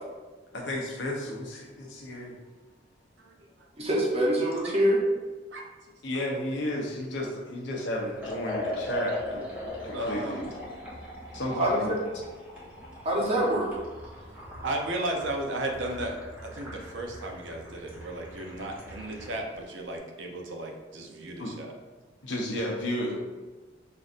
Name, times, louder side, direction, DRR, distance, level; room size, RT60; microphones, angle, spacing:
voice 1, 0.5-2.4 6.0-9.5 9.8-10.5 11.3-12.0 21.4-21.5 22.2-23.2, left 1 dB, 80° left, -1 dB, 0.8 m, -32 dB
voice 2, 3.8-5.0 11.6-12.0 13.0-13.7, right 1 dB, 35° right, -3 dB, 0.9 m, -25 dB
Liquid, 8.2-19.4, left 1 dB, 10° right, 1.1 m, -40 dB
voice 3, 9.9-10.4 14.6-16.1 16.4-21.7, right 1 dB, 90° right, 2 dB, 0.6 m, -34 dB
5.5 x 2.6 x 2.5 m, 1.3 s
head